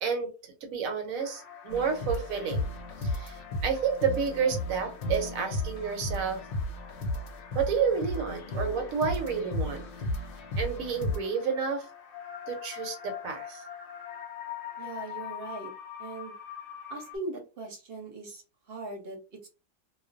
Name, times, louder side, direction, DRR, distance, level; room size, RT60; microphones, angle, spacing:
voice 1, 0.0-2.7 3.0-6.4 7.5-9.9 10.6-11.8 12.5-13.6, right 6 dB, 75° right, 5 dB, 1.1 m, -30 dB
sound 1, 1.2-17.2, left 9 dB, 65° left, 0.6 m, -45 dB
sound 2, 1.7-11.2, left 1 dB, 85° left, 1.0 m, -34 dB
voice 2, 14.8-15.7 16.0-16.3 16.9-19.5, right 2 dB, 50° right, 1 dB, 0.9 m, -40 dB
2.4 x 2.2 x 2.5 m, 0.30 s
omnidirectional pair, 1.5 m